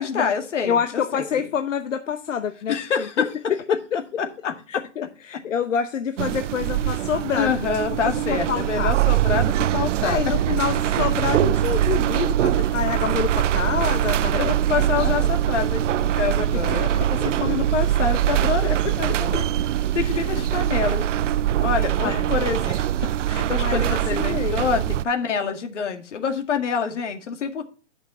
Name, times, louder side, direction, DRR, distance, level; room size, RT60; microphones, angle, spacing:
voice 1, 0.0-1.2 2.7-3.3 4.2-4.5 7.3-10.2 14.4-19.5 19.9-21.1 21.6-27.6, left 6 dB, 70° left, 6 dB, 2.1 m, -27 dB
voice 2, 0.6-2.7 3.2-3.3 3.9-4.0 4.7-7.5 8.0-8.9 10.0-14.5 14.9-15.3 16.5-17.5 18.4-18.5 19.1-19.2 20.0-20.2 22.0-22.3 23.6-24.8, left 7 dB, 90° left, 8 dB, 1.0 m, -27 dB
sound 1, 6.2-25.0, right 11 dB, 75° right, 0.5 m, -23 dB
10.5 x 6.0 x 4.3 m, 0.35 s
hypercardioid pair, 155°, 37 cm